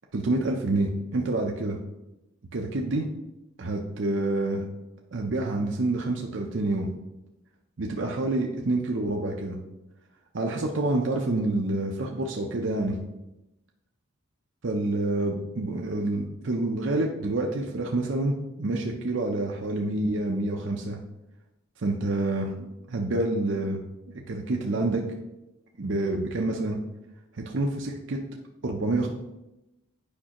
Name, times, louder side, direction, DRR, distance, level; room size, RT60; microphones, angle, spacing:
voice 1, 0.1-1.8 2.5-3.0 3.6-4.6 5.1-6.9 7.8-9.6 10.3-13.0 14.6-21.0 21.8-22.5 22.9-23.8 24.1-25.0 25.8-26.8 27.4-28.2 28.6-29.1, right 2 dB, 60° right, 1 dB, 0.6 m, -27 dB
8.6 x 5.3 x 2.9 m, 0.95 s
head